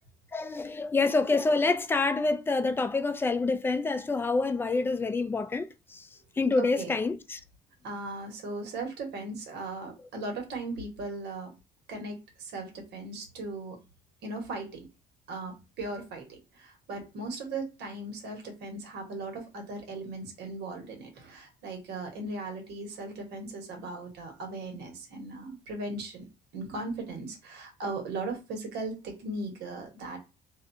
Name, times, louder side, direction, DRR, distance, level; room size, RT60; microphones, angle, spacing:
voice 1, 0.3-6.1 6.4-7.4, left 3 dB, 15° left, 0.3 m, -27 dB
voice 2, 6.6-6.9 7.8-11.5 11.9-13.8 14.2-14.9 15.3-26.3 26.5-30.2, right 2 dB, 80° right, 1.2 m, -38 dB
2.5 x 2.3 x 2.7 m
cardioid pair, 110°, 17 cm